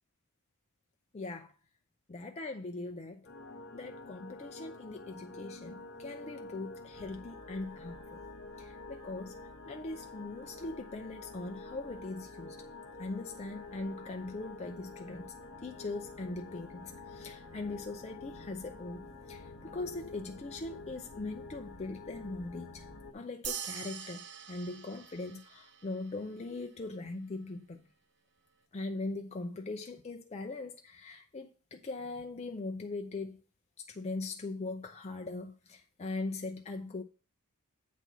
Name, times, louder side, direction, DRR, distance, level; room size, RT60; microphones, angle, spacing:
voice 1, 1.1-1.5 2.1-3.3 3.7-8.2 8.6-9.3 9.7-12.6 13.0-15.3 15.6-22.8 23.1-27.8 28.7-33.4 33.8-37.0, left 2 dB, 30° left, 0.5 m, -41 dB
sound 1, 3.2-23.1, left 3 dB, 50° left, 1.1 m, -48 dB
sound 2, 23.4-26.2, right 8 dB, 50° right, 0.8 m, -43 dB
8.2 x 4.2 x 6.0 m
head